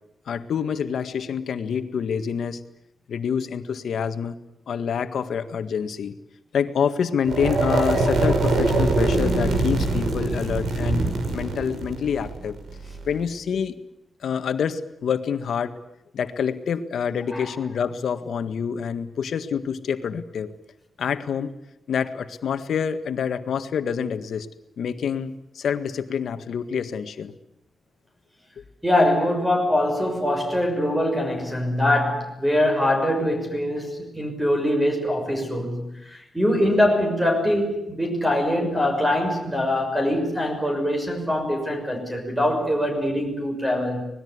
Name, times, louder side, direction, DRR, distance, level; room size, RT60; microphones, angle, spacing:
voice 1, 0.2-2.6 3.1-4.4 4.7-6.1 6.5-11.1 11.3-12.6 13.0-13.8 14.2-15.8 16.1-20.5 21.0-21.5 21.9-24.5 24.8-27.3, left 7 dB, 80° left, 9 dB, 1.8 m, -27 dB
sound 1, 7.2-13.2, right 2 dB, 75° right, 5.9 m, -23 dB
voice 2, 28.8-44.0, left 1 dB, 10° right, 3 dB, 6.2 m, -23 dB
25.5 x 20.0 x 9.7 m, 0.83 s
wide cardioid pair, 145°, 0 cm